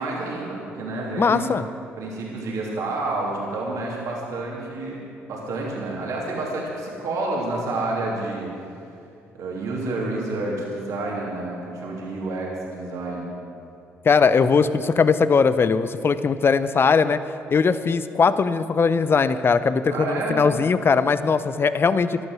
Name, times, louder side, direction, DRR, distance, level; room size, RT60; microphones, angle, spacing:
voice 1, 0.0-1.4 2.0-8.5 9.3-13.3 19.9-20.4, right 2 dB, 65° right, -3 dB, 3.1 m, -29 dB
voice 2, 1.2-1.7 14.0-17.2 17.5-22.2, left 5 dB, 40° left, 13 dB, 0.8 m, -20 dB
15.0 x 12.0 x 6.3 m, 2.6 s
hypercardioid pair, 50°, 6 cm